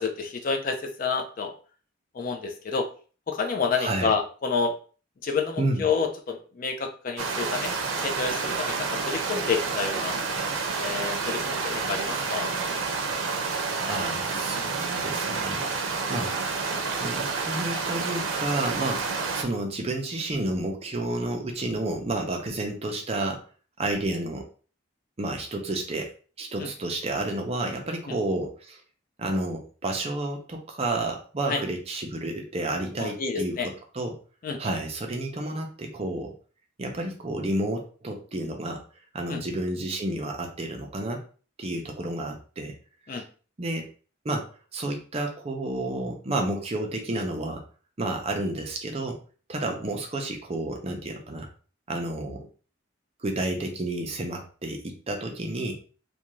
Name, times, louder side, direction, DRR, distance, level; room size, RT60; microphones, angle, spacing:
voice 1, 0.0-1.5 2.2-2.9 3.3-4.7 5.2-7.7 8.0-10.2 10.8-12.5 31.5-31.6 33.0-33.7 34.4-34.6 39.3-39.4 43.1-43.2, left 5 dB, 45° left, 4 dB, 0.4 m, -29 dB
voice 2, 3.7-4.1 5.6-5.9 13.9-15.6 16.1-16.3 16.9-23.4 23.8-24.4 25.2-26.1 26.4-28.8 29.2-34.1 34.6-36.3 36.8-38.8 39.1-41.2 41.6-42.7 43.1-43.2 43.6-43.9 44.2-47.6 48.0-49.2 49.5-51.5 51.9-52.4 53.2-55.8, right 2 dB, 30° right, 3 dB, 0.5 m, -30 dB
sound 1, 7.2-19.4, right 4 dB, 80° right, 0.5 m, -29 dB
2.5 x 2.2 x 3.0 m, 0.39 s
head